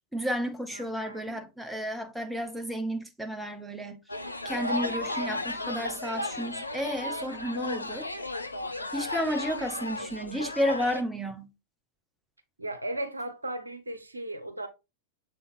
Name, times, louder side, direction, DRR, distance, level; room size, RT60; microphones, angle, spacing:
voice 1, 0.1-4.0 4.4-8.1 8.9-11.5, equal, 5° right, 1.0 m, -32 dB
voice 2, 0.7-1.4 4.6-5.4 12.6-14.7, right 1 dB, 80° right, 1.0 m, -37 dB
sound 1, 4.1-11.0, left 2 dB, 85° left, 0.5 m, -34 dB
7.0 x 3.9 x 3.5 m
figure-of-eight pair, 90°, 0 cm